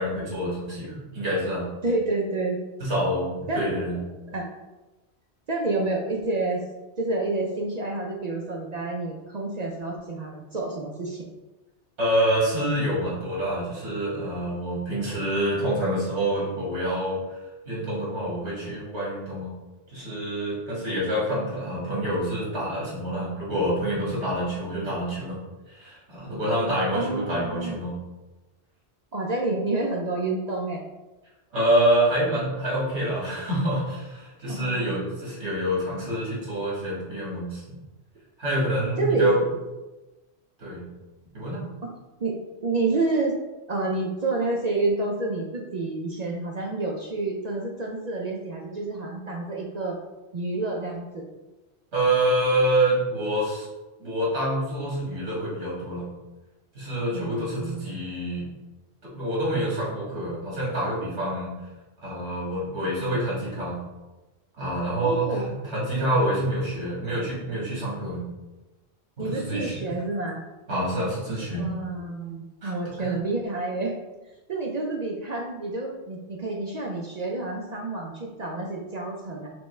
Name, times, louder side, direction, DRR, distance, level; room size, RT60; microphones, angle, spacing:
voice 1, 0.0-1.7 2.8-4.0 12.0-17.2 17.7-19.5 19.9-25.4 25.7-28.0 31.5-37.6 38.4-39.4 40.6-40.8 41.3-41.6 51.9-53.7 54.0-56.1 56.8-58.5 59.0-61.5 62.0-63.8 64.6-68.2 69.2-69.7 70.7-71.7 72.6-72.7 73.0-73.1, right 1 dB, 80° right, -7 dB, 2.0 m, -27 dB
voice 2, 1.8-2.6 3.5-3.7 4.3-4.5 5.5-6.6 7.0-11.3 26.9-27.8 29.1-30.8 34.5-35.1 39.0-39.6 41.8-41.9 42.2-42.4 42.6-43.3 43.7-50.0 50.3-51.2 57.1-58.0 65.0-65.5 69.2-70.4 71.5-74.0 74.5-79.5, right 2 dB, 55° right, -1 dB, 0.5 m, -29 dB
5.9 x 2.2 x 3.1 m, 1.1 s
omnidirectional pair, 1.1 m